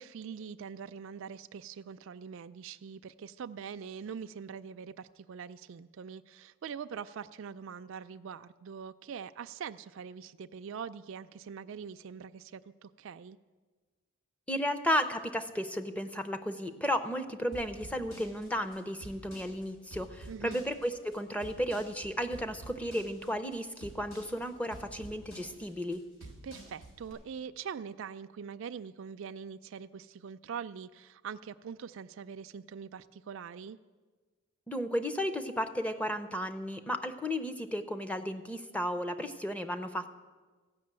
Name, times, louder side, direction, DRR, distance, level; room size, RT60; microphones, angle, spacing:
voice 1, 0.0-13.4 20.3-20.6 26.4-33.8, right 7 dB, 60° right, 10 dB, 0.4 m, -43 dB
voice 2, 14.5-26.0 34.7-40.2, equal, 5° left, 10 dB, 0.6 m, -34 dB
sound 1, 17.5-27.1, right 1 dB, 80° left, 5.1 m, -48 dB
15.0 x 6.1 x 8.7 m, 1.4 s
head